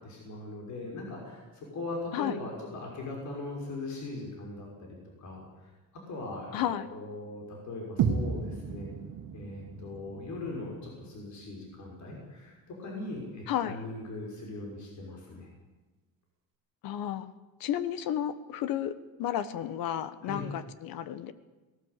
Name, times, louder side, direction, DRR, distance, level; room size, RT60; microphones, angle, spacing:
voice 1, 0.0-5.7 6.1-8.9 9.3-15.5 20.2-20.4, left 2 dB, 55° left, -1 dB, 5.7 m, -40 dB
voice 2, 6.5-6.9 13.5-13.8 16.8-17.3 17.6-21.3, left 10 dB, 85° left, 14 dB, 1.3 m, -32 dB
sound 1, 8.0-12.0, right 6 dB, 70° right, 1.8 m, -34 dB
18.5 x 18.0 x 8.4 m, 1.2 s
cardioid pair, 155°, 34 cm